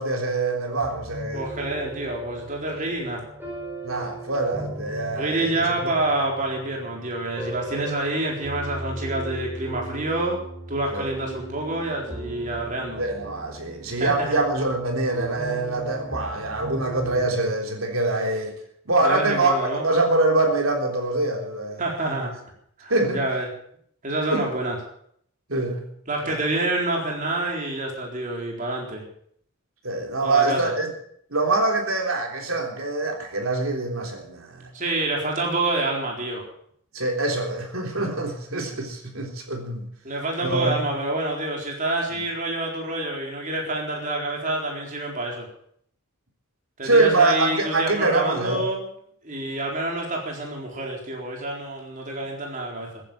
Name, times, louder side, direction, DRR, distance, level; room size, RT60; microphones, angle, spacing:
voice 1, 0.0-1.5 2.7-2.9 3.8-5.9 7.7-7.9 10.9-11.1 13.0-18.6 18.9-21.8 22.9-23.2 24.3-24.5 25.5-25.9 26.2-26.4 29.8-30.9 31.3-34.7 36.9-39.9 40.4-40.8 46.8-48.7, right 2 dB, 70° right, 2 dB, 3.6 m, -24 dB
sound 1, 0.8-17.4, right 1 dB, 10° right, 4.8 m, -38 dB
voice 2, 1.3-3.2 5.2-10.4 10.7-13.0 14.0-14.4 19.0-19.9 21.8-22.3 22.8-23.5 24.0-24.8 26.1-29.0 30.2-30.7 34.7-36.5 40.0-45.5 46.8-48.9 49.2-53.0, right 2 dB, 35° right, -1 dB, 4.2 m, -27 dB
15.0 x 10.5 x 7.7 m, 0.65 s
head